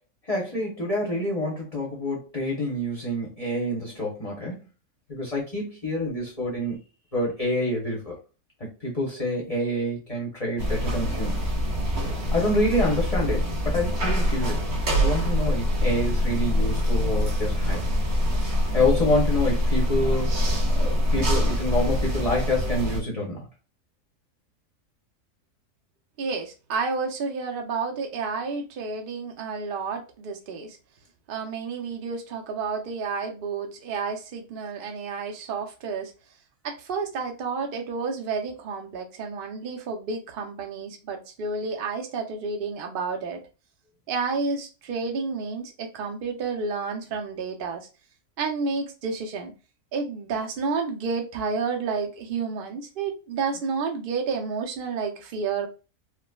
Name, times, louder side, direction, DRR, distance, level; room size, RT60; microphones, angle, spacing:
voice 1, 0.3-4.6 5.1-6.8 7.1-8.1 8.8-11.5 12.3-14.7 15.0-17.8 18.7-20.3 20.8-23.4, left 1 dB, 30° left, 0.8 m, -27 dB
sound 1, 10.6-23.0, equal, 85° right, 1.8 m, -24 dB
voice 2, 26.2-30.8 31.3-36.1 36.6-43.4 44.1-47.9 48.4-49.5 49.9-55.7, right 4 dB, 50° right, 0.7 m, -30 dB
4.8 x 2.1 x 2.3 m
omnidirectional pair, 1.6 m